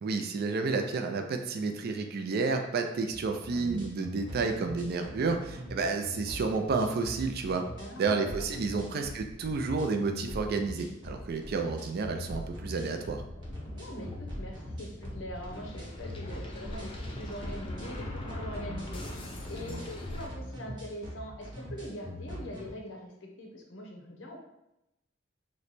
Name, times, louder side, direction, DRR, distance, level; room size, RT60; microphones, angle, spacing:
voice 1, 0.0-7.6 8.0-13.2, right 4 dB, 55° right, 5 dB, 0.4 m, -31 dB
sound 1, 3.1-22.7, equal, 25° right, 0.9 m, -42 dB
voice 2, 7.8-8.8 13.7-14.1 14.4-16.9 17.2-24.4, equal, 70° left, 1 dB, 0.7 m, -43 dB
sound 2, 11.9-20.3, left 1 dB, 25° left, 0.5 m, -42 dB
3.1 x 2.1 x 4.0 m, 0.89 s
head